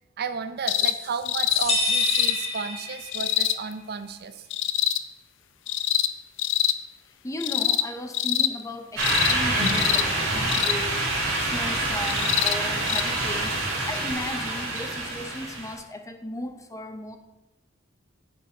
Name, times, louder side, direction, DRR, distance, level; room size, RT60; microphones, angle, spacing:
voice 1, 0.2-4.5, right 5 dB, 55° right, 10 dB, 0.6 m, -33 dB
sound 1, 0.7-1.0 1.3-1.7 2.0-2.3 3.1-3.6 4.5-5.0 5.7-6.1 6.4-6.8 7.4-7.9 8.1-8.5 9.0-9.4 9.6-10.0 10.5-10.8 12.1-12.6 12.9-13.0 14.1-14.2, left 11 dB, 65° left, 0.4 m, -24 dB
sound 2, 1.5-3.4, left 2 dB, 35° left, 1.3 m, -27 dB
voice 2, 7.2-11.1 11.4-17.2, left 1 dB, 15° left, 6 dB, 0.6 m, -36 dB
sound 3, 9.0-15.7, right 2 dB, 80° right, 2.9 m, -26 dB
9.4 x 5.3 x 4.3 m, 0.98 s
head